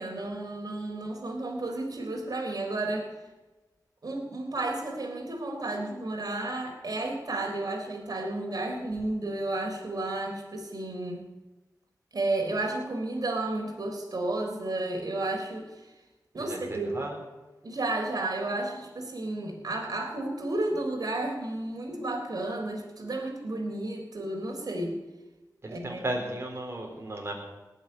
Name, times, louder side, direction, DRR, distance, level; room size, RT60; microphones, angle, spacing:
voice 1, 0.0-3.1 4.0-11.2 12.1-15.8 16.3-16.9 17.6-25.0 25.7-26.0, right 2 dB, 60° right, 1 dB, 3.7 m, -32 dB
voice 2, 16.4-17.2 25.6-27.3, right 1 dB, 40° right, 0 dB, 4.1 m, -35 dB
18.5 x 6.9 x 9.7 m, 1.1 s
wide cardioid pair, 65°, 7 cm